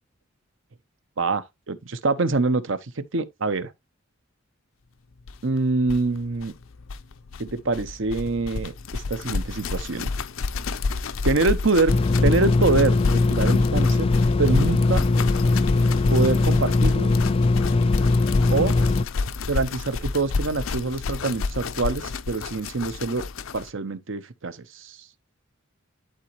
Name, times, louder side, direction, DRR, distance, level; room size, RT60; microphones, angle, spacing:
voice 1, 1.2-3.7 5.4-6.5 7.4-10.1 11.2-15.1 16.1-17.1 18.5-18.8 19.5-23.2 23.5-25.0, right 3 dB, 70° right, 0.9 m, -25 dB
sound 1, 5.3-5.4 5.6-5.7 5.8-23.7, left 4 dB, 85° left, 0.6 m, -29 dB
sound 2, 11.9-19.0, left 3 dB, 30° left, 0.3 m, -20 dB
11.0 x 4.2 x 3.0 m
head